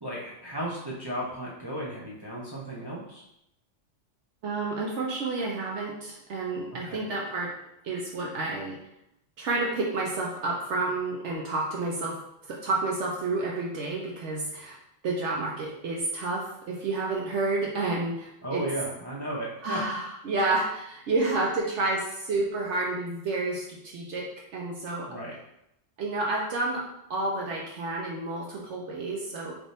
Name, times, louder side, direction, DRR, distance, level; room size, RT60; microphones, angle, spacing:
voice 1, 0.0-3.2 6.7-7.1 18.4-19.8 25.0-25.3, right 1 dB, 30° right, -5 dB, 0.4 m, -35 dB
voice 2, 4.4-7.5 7.8-8.8 9.4-12.2 12.5-14.8 15.0-18.6 19.6-24.3 24.5-25.1 26.0-26.8 27.1-29.6, right 2 dB, 70° right, -2 dB, 0.9 m, -30 dB
3.4 x 2.5 x 4.0 m, 0.81 s
omnidirectional pair, 1.3 m